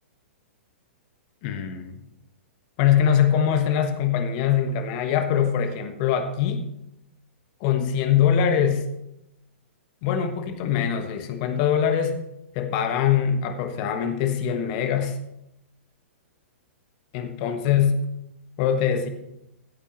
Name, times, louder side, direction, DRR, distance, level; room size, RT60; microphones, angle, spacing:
voice 1, 1.4-2.0 2.8-6.7 7.6-8.9 10.0-12.2 12.5-15.2 17.1-18.0 18.6-19.1, left 8 dB, 40° left, 8 dB, 1.2 m, -23 dB
15.0 x 8.3 x 3.1 m, 0.84 s
figure-of-eight pair, 105°, 7 cm